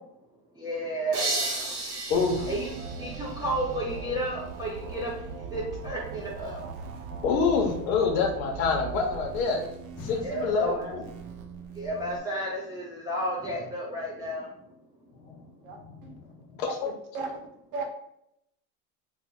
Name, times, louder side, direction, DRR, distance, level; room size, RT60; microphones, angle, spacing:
voice 1, 0.5-1.8 2.5-6.6 10.2-10.9 11.7-14.7, equal, 10° right, -6 dB, 0.4 m, -32 dB
sound 1, 1.1-3.9, right 2 dB, 35° right, 0.8 m, -33 dB
sound 2, 2.1-12.2, right 5 dB, 60° right, 0.6 m, -40 dB
sound 3, 7.0-8.7 10.0-11.5 11.8-11.9, left 2 dB, 30° left, 0.9 m, -48 dB
voice 2, 7.2-9.6 10.0-11.1 15.2-15.4 15.8-16.2 16.5-16.9, left 5 dB, 75° left, 0 dB, 0.8 m, -27 dB
voice 3, 15.6-16.1 16.7-17.4 17.7-17.8, right 3 dB, 80° right, 2 dB, 1.0 m, -36 dB
3.2 x 2.1 x 3.7 m, 0.76 s
supercardioid pair, 130°, 42 cm